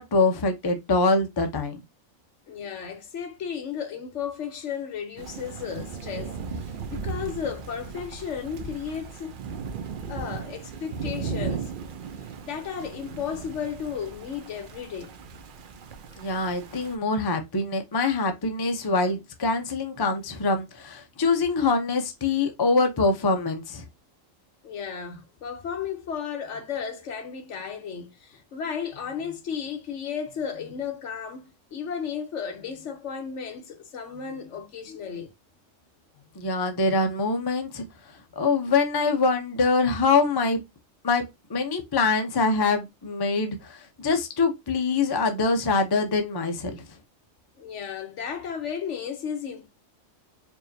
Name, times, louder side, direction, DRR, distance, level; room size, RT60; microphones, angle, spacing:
voice 1, 0.0-1.8 16.2-23.8 36.4-37.8 38.4-40.6 41.0-46.8, left 3 dB, 30° left, 0.5 m, -24 dB
voice 2, 2.5-9.4 10.1-11.7 12.4-15.2 24.6-35.3 47.6-49.7, left 7 dB, 65° left, 1.1 m, -34 dB
Thunder / Rain, 5.2-17.0, right 5 dB, 60° right, 0.5 m, -37 dB
4.6 x 2.8 x 2.6 m
omnidirectional pair, 1.4 m